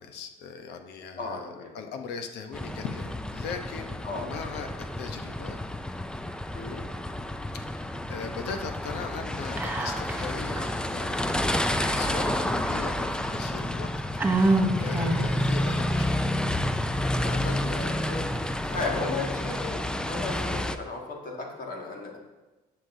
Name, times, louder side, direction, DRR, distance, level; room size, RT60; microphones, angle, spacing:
voice 1, 0.0-1.4 1.7-4.7 5.0-5.6 7.7-13.9 14.3-16.2 17.0-18.3 18.7-19.2, left 5 dB, 80° left, 6 dB, 0.9 m, -39 dB
voice 2, 1.2-2.0 4.0-4.7 6.5-6.8 18.0-18.3 18.6-22.2, left 3 dB, 55° left, 0 dB, 1.9 m, -35 dB
sound 1, 2.5-20.7, left 1 dB, 5° left, 0.4 m, -30 dB
Whispering, 9.6-10.3 10.6-10.7 11.8-12.7 13.3-13.4 14.2-15.4, right 2 dB, 10° right, 0.9 m, -26 dB
11.5 x 6.7 x 2.7 m, 1.1 s
cardioid pair, 110°, 17 cm